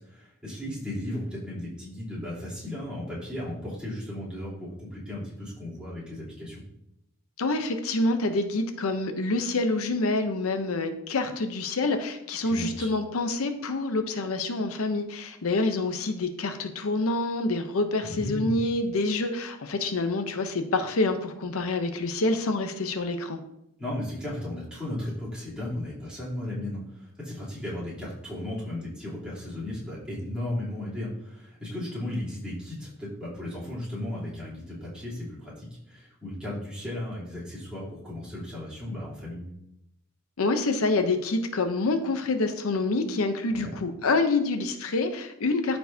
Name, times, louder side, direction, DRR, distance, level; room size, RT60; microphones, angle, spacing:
voice 1, 0.0-6.6 12.4-12.9 18.0-18.6 23.8-39.5 43.4-43.7, left 1 dB, 5° right, -9 dB, 3.2 m, -35 dB
voice 2, 7.4-23.4 40.4-45.8, left 2 dB, 75° left, 7 dB, 0.7 m, -27 dB
13.5 x 4.5 x 2.7 m, 0.83 s
head